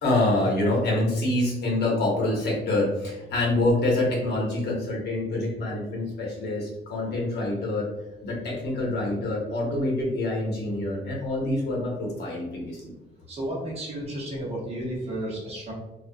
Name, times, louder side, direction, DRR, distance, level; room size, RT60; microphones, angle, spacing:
voice 1, 0.0-7.9 8.2-12.8, left 2 dB, 60° left, -2 dB, 0.9 m, -26 dB
voice 2, 13.3-15.7, right 1 dB, 30° right, -5 dB, 0.9 m, -32 dB
2.3 x 2.1 x 2.5 m, 0.99 s
cardioid pair, 160°, 19 cm